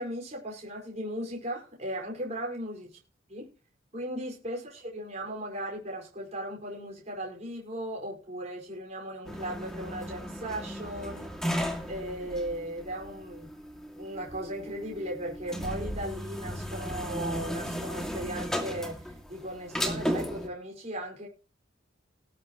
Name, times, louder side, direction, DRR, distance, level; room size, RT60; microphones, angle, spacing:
voice 1, 0.0-2.9 3.3-3.5 3.9-11.6 11.9-13.5 14.0-21.3, right 1 dB, 35° right, -1 dB, 5.1 m, -37 dB
sound 1, 9.2-20.5, equal, 5° left, 2.4 m, -35 dB
19.0 x 8.6 x 3.1 m, 0.35 s
head